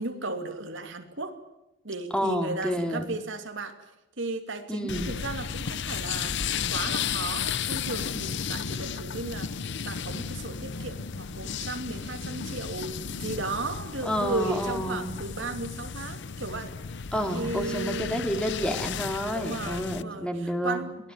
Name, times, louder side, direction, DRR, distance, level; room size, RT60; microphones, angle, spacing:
voice 1, 0.0-1.4 1.8-3.8 4.2-6.4 6.7-16.7 17.3-18.3 19.3-21.0, right 2 dB, 65° right, 6 dB, 2.8 m, -35 dB
voice 2, 2.1-3.1 4.7-5.1 14.0-15.1 17.1-20.9, equal, 5° left, 5 dB, 2.9 m, -29 dB
sound 1, 4.9-20.0, left 7 dB, 60° left, 0.7 m, -34 dB
23.5 x 17.5 x 9.3 m, 0.94 s
head